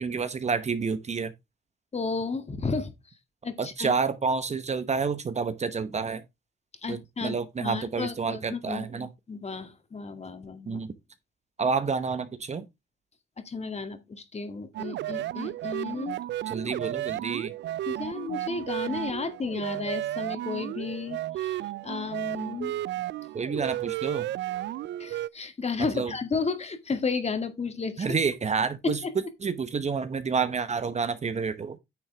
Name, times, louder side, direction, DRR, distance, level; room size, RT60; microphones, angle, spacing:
voice 1, 0.0-1.3 3.6-6.2 6.9-9.1 10.7-10.9 11.6-12.6 16.5-17.5 23.3-24.3 25.9-26.1 28.0-29.0 29.4-31.8, right 5 dB, 35° right, 0.9 m, -29 dB
voice 2, 1.9-2.9 3.4-3.9 6.8-10.8 13.5-16.2 17.9-22.8 25.0-28.2 28.8-29.1, left 4 dB, 35° left, 1.9 m, -33 dB
sound 1, 14.7-25.3, right 14 dB, 65° right, 0.4 m, -33 dB
9.6 x 6.4 x 3.4 m
cardioid pair, 90°, 20 cm